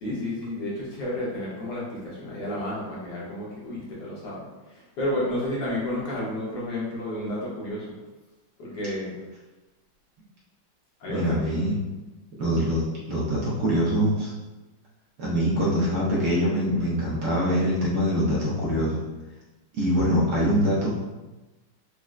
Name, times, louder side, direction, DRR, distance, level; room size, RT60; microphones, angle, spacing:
voice 1, 0.0-7.9 8.6-9.2 11.0-11.7, left 1 dB, 65° left, -6 dB, 1.4 m, -31 dB
voice 2, 11.1-11.7 12.4-14.3 15.2-19.0 19.7-20.9, equal, 65° right, -6 dB, 1.1 m, -24 dB
4.1 x 2.0 x 2.4 m, 1.1 s
omnidirectional pair, 2.2 m